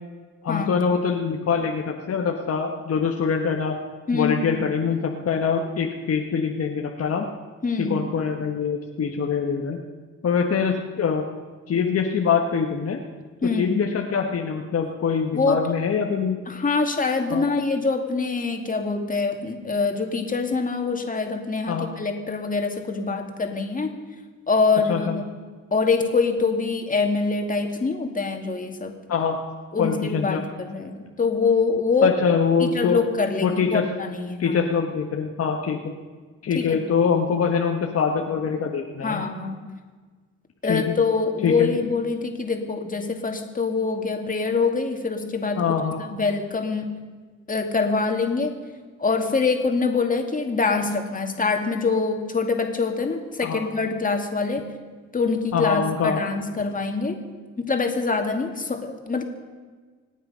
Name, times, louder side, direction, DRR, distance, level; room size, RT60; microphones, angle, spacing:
voice 1, 0.4-3.7 4.1-7.3 7.8-9.8 10.2-11.2 11.7-13.0 13.6-16.4 17.3-17.4 21.7-21.9 24.9-25.2 29.1-29.4 29.8-30.4 32.0-33.0 33.4-33.8 34.4-35.8 36.4-39.3 40.7-40.9 41.4-41.7 45.6-46.0 53.4-53.6 55.5-56.2, left 6 dB, 55° left, 2 dB, 1.4 m, -24 dB
voice 2, 4.1-4.4 7.6-8.0 13.4-13.8 15.3-15.6 16.5-23.9 24.5-25.2 25.7-28.9 29.7-32.2 32.6-34.6 36.5-36.8 39.0-39.6 40.6-45.6 46.1-46.9 47.5-48.6 49.0-54.6 55.1-57.2 57.6-59.2, left 4 dB, 25° left, 4 dB, 2.5 m, -24 dB
25.5 x 9.2 x 5.7 m, 1.4 s
cardioid pair, 90°, 30 cm